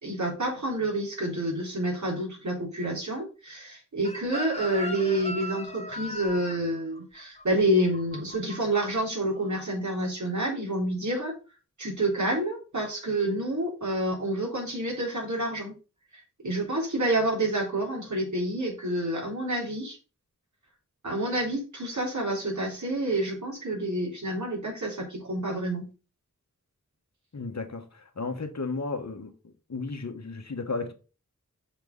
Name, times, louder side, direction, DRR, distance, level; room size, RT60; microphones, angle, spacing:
voice 1, 0.0-11.4 11.8-15.7 16.1-20.0 21.0-25.9, right 1 dB, 65° right, 3.9 m, -28 dB
Chicken rooster, 4.0-9.0 9.3-9.6, equal, 20° left, 1.3 m, -38 dB
voice 2, 27.3-29.3 29.7-30.9, left 3 dB, 60° left, 1.4 m, -34 dB
6.7 x 4.5 x 5.4 m
wide cardioid pair, 65°, 31 cm